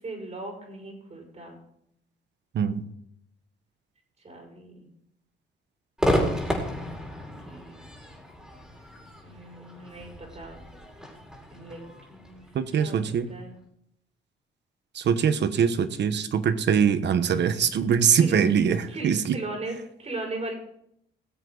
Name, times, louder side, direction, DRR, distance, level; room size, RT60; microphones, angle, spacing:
voice 1, 0.0-1.6 4.2-4.9 7.4-7.8 9.2-10.6 11.5-11.8 12.1-12.5 12.7-13.0 13.3-13.5 18.1-18.4 18.9-20.6, right 2 dB, 35° right, 1 dB, 6.3 m, -38 dB
Crowd / Fireworks, 6.0-13.3, equal, 5° right, 5.0 m, -32 dB
voice 2, 12.5-13.3 14.9-19.4, right 7 dB, 60° right, 11 dB, 1.3 m, -23 dB
20.0 x 8.0 x 4.0 m, 0.73 s
cardioid pair, 90°, 20 cm